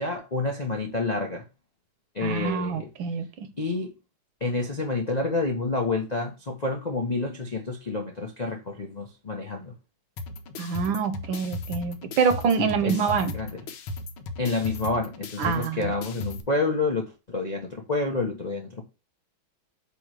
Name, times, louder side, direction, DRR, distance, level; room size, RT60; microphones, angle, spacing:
voice 1, 0.0-1.5 2.1-2.9 3.6-3.9 4.4-9.7 12.6-13.6 14.4-18.8, left 3 dB, 50° left, 0.4 m, -29 dB
voice 2, 2.2-3.5 10.6-13.3 15.4-15.9, right 6 dB, 70° right, 1.5 m, -26 dB
sound 1, 10.2-16.4, left 2 dB, 75° left, 1.7 m, -37 dB
8.2 x 3.1 x 4.7 m
omnidirectional pair, 2.3 m